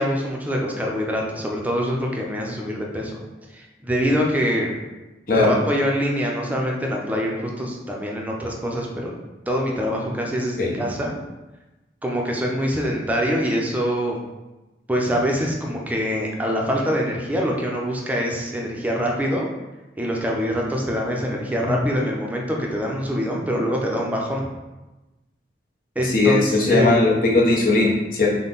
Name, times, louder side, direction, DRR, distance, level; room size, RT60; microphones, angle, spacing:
voice 1, 0.0-3.2 3.5-4.8 5.3-9.1 9.5-11.2 12.0-14.2 14.9-19.5 20.0-24.5 26.0-27.1, equal, 10° right, -1 dB, 0.6 m, -24 dB
voice 2, 26.0-28.3, left 2 dB, 50° left, -4 dB, 1.0 m, -19 dB
5.5 x 2.2 x 3.9 m, 1.1 s
head